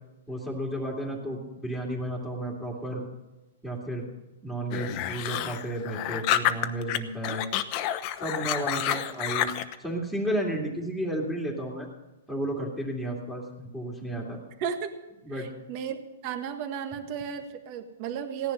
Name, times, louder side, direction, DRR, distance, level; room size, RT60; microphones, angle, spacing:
voice 1, 0.3-3.0 3.6-4.0 4.4-7.5 8.2-9.5 9.8-11.9 12.3-14.4 15.2-15.5, right 1 dB, 5° right, -5 dB, 2.6 m, -32 dB
sound 1, 4.7-7.0 7.2-9.7, left 12 dB, 35° left, 1.0 m, -29 dB
voice 2, 14.6-15.0 15.3-16.0 16.2-18.5, right 8 dB, 40° right, 8 dB, 1.5 m, -34 dB
16.5 x 10.5 x 5.5 m, 1.1 s
hypercardioid pair, 150°, 0 cm